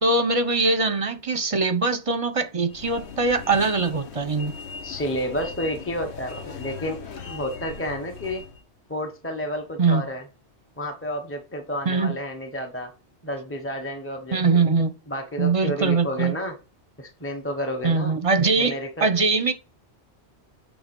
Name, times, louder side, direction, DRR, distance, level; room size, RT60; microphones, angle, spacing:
voice 1, 0.0-4.5 9.8-10.0 11.9-12.2 14.3-14.9 15.4-16.3 17.8-19.5, right 3 dB, 35° right, 0.7 m, -22 dB
sound 1, 2.7-8.6, left 5 dB, 75° left, 1.3 m, -39 dB
voice 2, 4.8-8.4 8.9-10.3 10.8-12.9 13.2-14.6 15.1-16.6 17.0-18.1 18.6-19.1, equal, 15° left, 0.9 m, -31 dB
8.5 x 3.7 x 5.3 m
omnidirectional pair, 1.1 m